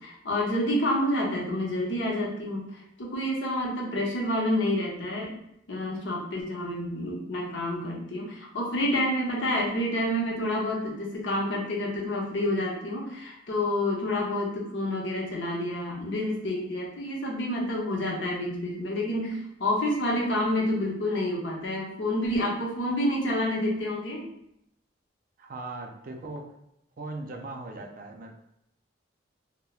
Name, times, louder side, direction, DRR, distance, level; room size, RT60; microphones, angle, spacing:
voice 1, 0.0-5.3 5.7-24.3, left 1 dB, 65° left, -2 dB, 0.7 m, -28 dB
voice 2, 25.4-26.5 27.0-28.3, right 2 dB, 45° right, 3 dB, 0.4 m, -39 dB
2.9 x 2.1 x 2.3 m, 0.77 s
head